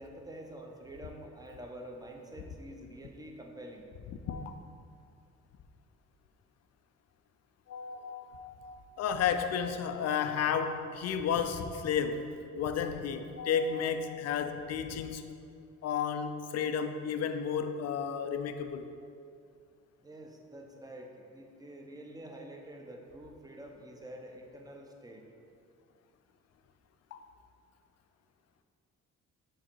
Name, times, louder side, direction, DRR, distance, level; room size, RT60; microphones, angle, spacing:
voice 1, 0.0-3.9 20.0-25.2, right 1 dB, 10° right, 1 dB, 0.8 m, -47 dB
voice 2, 7.7-15.3 15.8-18.9 27.1-27.2, left 7 dB, 55° left, 8 dB, 0.5 m, -32 dB
6.4 x 3.8 x 4.5 m, 2.4 s
cardioid pair, 90°, 30 cm